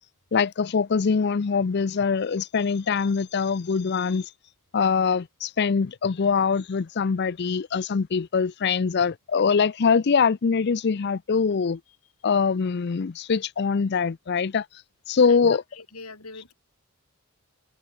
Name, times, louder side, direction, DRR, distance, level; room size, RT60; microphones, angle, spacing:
voice 1, 0.3-4.3 4.7-11.8 12.2-14.7 15.1-15.6, left 5 dB, 50° left, 0.5 m, -23 dB
voice 2, 15.7-16.5, left 3 dB, 85° left, 6.2 m, -42 dB
head